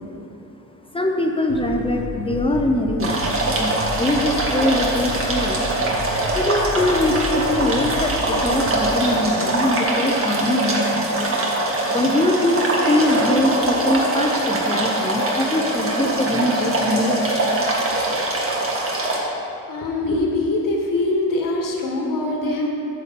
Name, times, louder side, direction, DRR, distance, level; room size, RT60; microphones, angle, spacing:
voice 1, 0.9-3.2 3.6-5.6 6.3-11.0 11.9-17.2, left 1 dB, 15° left, 2 dB, 0.8 m, -22 dB
sound 1, 1.5-8.9, equal, 70° right, 0.9 m, -32 dB
sound 2, 3.0-19.2, right 2 dB, 40° right, 1.7 m, -22 dB
voice 2, 19.7-22.7, left 2 dB, 65° left, 0 dB, 1.6 m, -23 dB
9.7 x 7.0 x 4.2 m, 2.8 s
cardioid pair, 85°, 35 cm